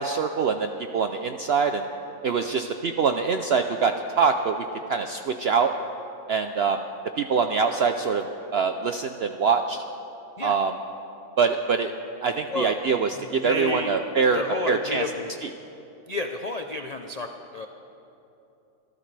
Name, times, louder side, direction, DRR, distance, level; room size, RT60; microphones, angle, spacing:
voice 1, 0.0-1.8 2.2-5.7 6.3-6.8 7.2-8.2 8.5-9.8 10.4-10.7 11.4-11.9 12.2-15.0, right 5 dB, 70° right, 6 dB, 0.6 m, -24 dB
voice 2, 2.4-2.7 10.4-10.6 12.5-12.7 13.1-14.0 14.3-15.3 16.1-17.7, left 2 dB, 60° left, 4 dB, 0.4 m, -31 dB
26.0 x 13.5 x 3.3 m, 2.8 s
omnidirectional pair, 1.6 m